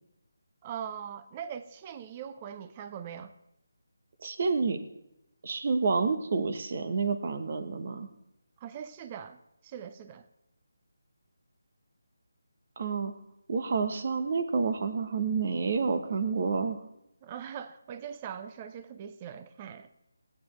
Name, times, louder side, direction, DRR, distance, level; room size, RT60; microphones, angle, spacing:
voice 1, 0.6-3.3 8.6-10.3 17.2-19.9, right 8 dB, 25° right, 11 dB, 0.6 m, -41 dB
voice 2, 4.2-4.8 5.4-8.1 12.8-13.1 13.5-16.8, right 4 dB, 45° right, 8 dB, 1.1 m, -29 dB
16.5 x 9.3 x 3.2 m, 0.84 s
figure-of-eight pair, 160°, 0 cm